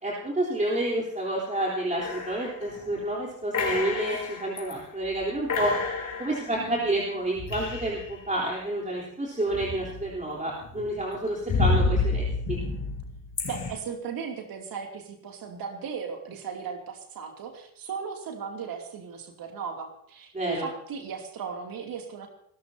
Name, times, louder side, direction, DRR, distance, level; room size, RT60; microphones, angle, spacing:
voice 1, 0.0-5.7 6.2-12.6 20.3-20.7, right 1 dB, 20° right, -4 dB, 3.7 m, -29 dB
sound 1, 2.0-3.0 3.5-4.7 5.1-5.2 5.5-8.2 9.5-10.2 10.6-13.7, left 3 dB, 45° left, 4.6 m, -30 dB
voice 2, 13.5-22.3, right 6 dB, 55° right, 3 dB, 2.8 m, -36 dB
25.5 x 13.5 x 2.8 m, 0.69 s
hypercardioid pair, 50°, 42 cm